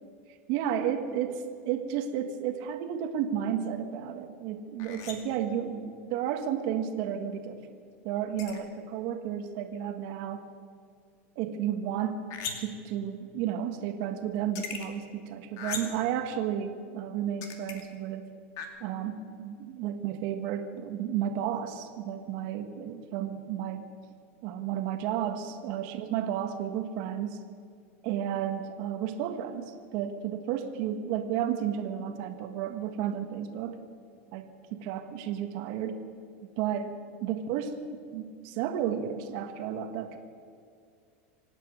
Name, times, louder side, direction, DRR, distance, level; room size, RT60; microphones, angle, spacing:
voice 1, 0.5-7.6 8.0-10.5 11.3-12.3 12.6-18.2 18.8-23.9 24.4-27.4 28.0-33.8 34.3-34.4 34.7-36.1 36.4-37.0 37.2-40.2, right 9 dB, 55° right, 5 dB, 1.6 m, -32 dB
sound 1, 4.8-5.4 8.4-8.6 12.3-12.8 14.4-14.8 15.6-16.1 17.4-17.8 18.6-18.7, left 6 dB, 50° left, 2.4 m, -38 dB
25.5 x 8.8 x 6.4 m, 2.3 s
supercardioid pair, 125°, 7 cm